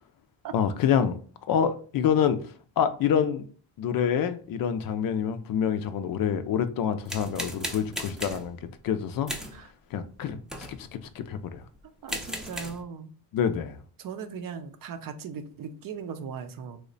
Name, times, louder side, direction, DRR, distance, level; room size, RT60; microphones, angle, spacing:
voice 1, 0.5-1.2 1.5-2.4 2.8-3.4 3.8-9.3 9.9-10.4 10.7-11.6 13.3-13.8, left 8 dB, 55° left, 0.5 m, -26 dB
sound 1, 7.0-8.5 9.3-9.6 10.4-10.8 11.7-11.8 12.1-12.8, equal, ahead, 0.5 m, -36 dB
voice 2, 12.0-13.1 14.0-16.8, right 6 dB, 50° right, 0.6 m, -38 dB
3.1 x 2.1 x 3.8 m
cardioid pair, 85°, 42 cm